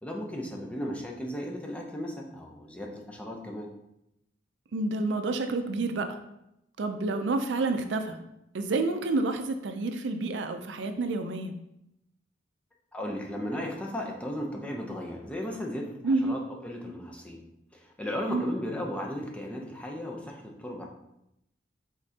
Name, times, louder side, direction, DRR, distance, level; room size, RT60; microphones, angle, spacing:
voice 1, 0.0-3.7 12.9-17.4 17.7-20.9, left 1 dB, 5° left, 0 dB, 0.6 m, -36 dB
voice 2, 4.7-6.1 6.8-8.2 8.5-11.5 16.0-16.4 18.3-18.5, right 3 dB, 70° right, 7 dB, 0.4 m, -29 dB
5.2 x 3.7 x 2.8 m, 0.82 s
head